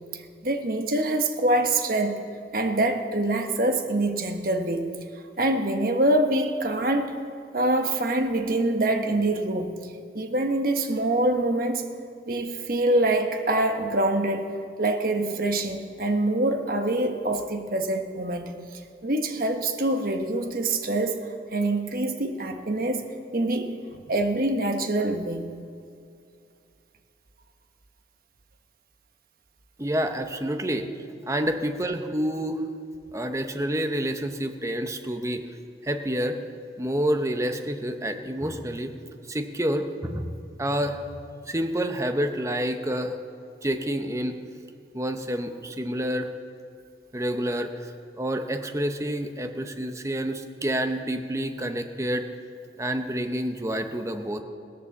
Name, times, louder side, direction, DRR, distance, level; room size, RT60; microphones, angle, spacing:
voice 1, 0.1-2.2 2.5-4.9 5.4-7.1 7.5-9.8 10.1-11.9 12.3-14.5 14.8-18.5 19.0-21.2 21.5-23.7 24.1-25.5, right 1 dB, 55° right, 5 dB, 1.3 m, -25 dB
voice 2, 29.8-30.9 31.3-32.6 33.1-35.4 35.8-36.4 36.8-38.9 39.3-40.3 40.6-41.1 41.5-43.1 43.6-44.4 44.9-46.3 47.1-52.2 52.8-54.4, equal, 15° right, 6 dB, 0.9 m, -28 dB
17.0 x 11.0 x 7.2 m, 2.4 s
head